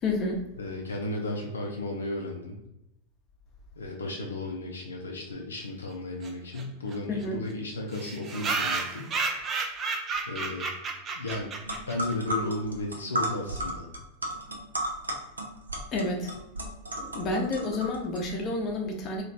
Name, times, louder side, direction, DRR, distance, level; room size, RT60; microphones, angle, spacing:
voice 1, 0.0-0.4 7.1-7.4 15.9-16.3 17.0-19.2, left 2 dB, 30° left, 1 dB, 0.8 m, -30 dB
voice 2, 0.6-2.6 3.8-9.1 10.3-10.7 11.2-11.5 11.9-13.9, left 2 dB, 70° left, 0 dB, 0.5 m, -34 dB
sound 1, 6.2-6.3 6.6-6.7 6.9-7.0 7.2-7.3 7.9-12.1, right 4 dB, 25° right, 0.5 m, -32 dB
sound 2, 11.3-11.4 11.6-18.2, equal, 75° right, 0.6 m, -34 dB
3.0 x 2.5 x 3.9 m, 0.88 s
figure-of-eight pair, 90°, 0 cm